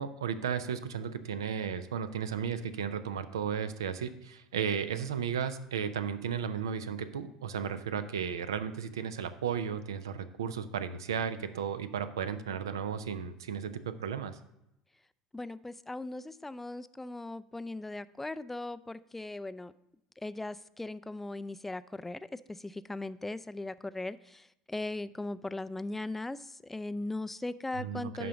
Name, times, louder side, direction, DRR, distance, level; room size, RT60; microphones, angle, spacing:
voice 1, 0.0-14.4 27.8-28.3, right 7 dB, 75° right, 0.5 m, -34 dB
voice 2, 15.3-19.7 20.2-28.3, left 2 dB, 10° left, 0.3 m, -39 dB
11.0 x 3.8 x 5.0 m
figure-of-eight pair, 70°, 2 cm